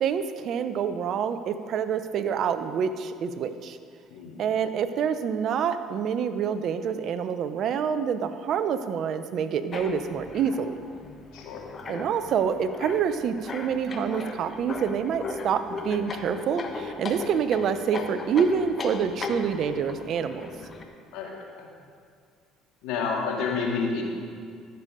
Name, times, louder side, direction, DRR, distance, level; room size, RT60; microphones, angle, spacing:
voice 1, 0.0-3.8 4.4-10.8 11.9-20.5, right 7 dB, 60° right, 11 dB, 0.6 m, -27 dB
sound 1, 9.7-20.8, left 4 dB, 40° left, 1.2 m, -37 dB
voice 2, 11.3-11.6 21.1-21.7 22.8-24.0, left 5 dB, 75° left, -1 dB, 2.1 m, -29 dB
14.0 x 6.9 x 5.0 m, 2.1 s
hypercardioid pair, 70°, 0 cm